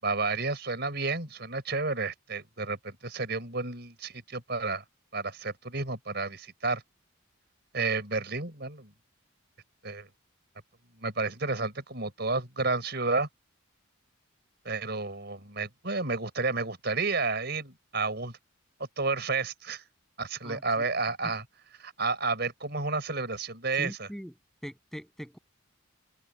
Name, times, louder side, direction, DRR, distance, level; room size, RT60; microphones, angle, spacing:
voice 1, 0.0-4.8 5.1-6.8 7.7-8.9 9.8-10.1 11.0-13.3 14.6-18.3 19.0-19.8 20.2-21.4 21.8-24.1, right 3 dB, 50° right, 5.5 m, -31 dB
voice 2, 20.4-20.9 21.2-21.3 23.8-24.3 24.6-25.4, equal, ahead, 7.5 m, -41 dB
head